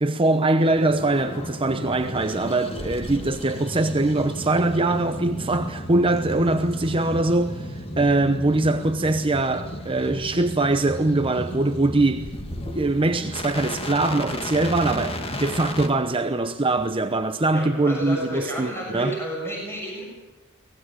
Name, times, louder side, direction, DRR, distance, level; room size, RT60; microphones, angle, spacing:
voice 1, 0.0-12.3 12.7-19.2, right 2 dB, 25° right, 0.8 m, -22 dB
sound 1, 0.6-15.9, left 1 dB, 25° left, 2.0 m, -34 dB
voice 2, 17.5-20.0, equal, 10° left, 6.7 m, -31 dB
23.5 x 18.5 x 9.0 m
head